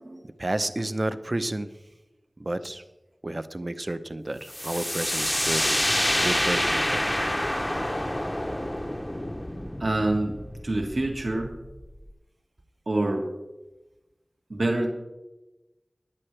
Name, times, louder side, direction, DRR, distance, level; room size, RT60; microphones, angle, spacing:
voice 1, 0.2-1.7 2.4-2.8 3.2-5.8 6.2-7.4, right 1 dB, 40° right, 10 dB, 0.7 m, -31 dB
sound 1, 4.5-12.1, left 1 dB, 15° left, 0.8 m, -27 dB
voice 2, 9.8-10.4 10.6-11.5 12.9-13.3 14.5-14.9, right 2 dB, 75° right, 1 dB, 1.5 m, -25 dB
20.5 x 8.9 x 3.3 m, 1.1 s
wide cardioid pair, 60°, 0 cm